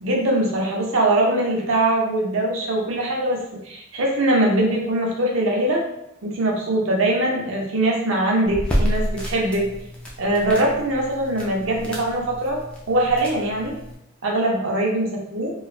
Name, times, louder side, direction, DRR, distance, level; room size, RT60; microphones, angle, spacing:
voice 1, 0.0-5.8 6.2-9.7 10.2-12.6 12.9-13.7 14.2-15.5, right 1 dB, 70° right, -1 dB, 0.7 m, -22 dB
sound 1, 8.4-13.9, equal, 5° left, 0.4 m, -29 dB
3.1 x 2.2 x 2.4 m, 0.82 s
head